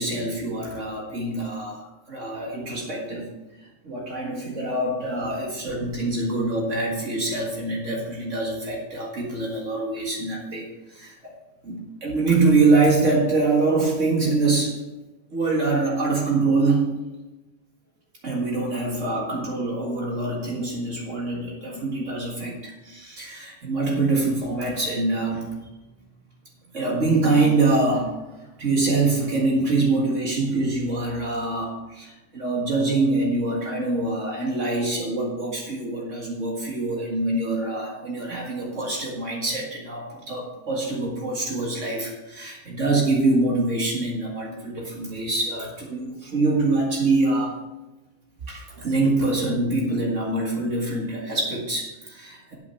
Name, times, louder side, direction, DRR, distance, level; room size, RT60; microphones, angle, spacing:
voice 1, 0.0-1.8 2.1-3.3 3.8-11.2 11.6-14.8 15.3-16.9 18.2-25.4 26.7-28.2 28.6-47.5 48.5-52.6, right 3 dB, 70° right, -2 dB, 2.1 m, -24 dB
9.2 x 8.6 x 5.5 m, 1.1 s
omnidirectional pair, 1.3 m